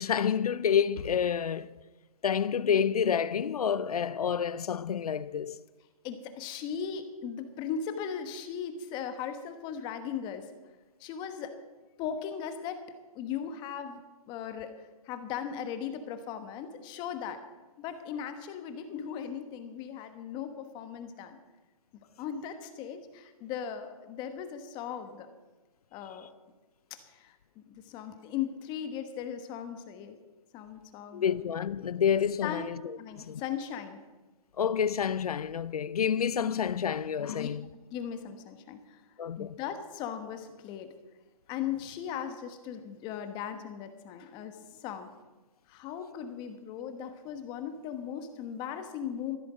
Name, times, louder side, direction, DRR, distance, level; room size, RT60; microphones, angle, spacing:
voice 1, 0.0-1.7 2.2-5.6 31.1-33.4 34.6-37.7 39.2-39.6, left 8 dB, 80° left, 0.7 m, -29 dB
voice 2, 6.0-10.5 11.0-11.6 12.0-12.8 13.1-17.4 17.8-21.4 22.2-25.3 25.9-26.3 27.1-30.2 30.5-31.4 32.4-32.7 33.0-34.0 37.3-37.5 37.9-39.0 39.4-40.9 41.5-45.1 45.7-49.4, left 8 dB, 25° left, 1.2 m, -38 dB
15.0 x 12.0 x 5.0 m
hypercardioid pair, 145°, 19 cm